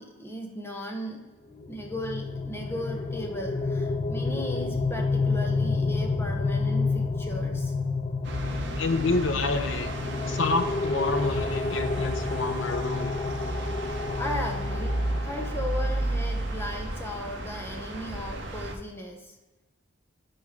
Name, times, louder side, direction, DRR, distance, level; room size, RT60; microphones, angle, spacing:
voice 1, 0.0-7.7 14.2-19.3, equal, 10° left, 1 dB, 0.9 m, -37 dB
sound 1, 1.6-16.3, left 3 dB, 30° left, 0.4 m, -30 dB
sound 2, 8.2-18.7, right 1 dB, 60° right, 0.9 m, -32 dB
voice 2, 8.8-9.9 10.3-13.2, left 3 dB, 70° left, 8 dB, 0.7 m, -28 dB
6.8 x 4.4 x 4.9 m, 1.1 s
head